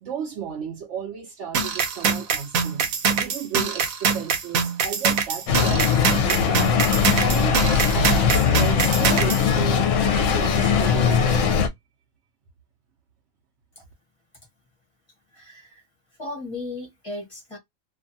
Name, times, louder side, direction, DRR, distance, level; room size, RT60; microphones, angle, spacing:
voice 1, 0.0-2.9 3.1-6.6 6.9-7.6 7.9-9.8 10.1-11.6, right 8 dB, 65° right, 0.9 m, -34 dB
sound 1, 1.5-9.4, right 6 dB, 90° right, 1.1 m, -24 dB
sound 2, 5.5-11.7, left 6 dB, 70° left, 0.9 m, -20 dB
voice 2, 15.3-15.8 16.2-17.6, left 2 dB, 25° left, 1.1 m, -35 dB
2.6 x 2.3 x 2.6 m
omnidirectional pair, 1.4 m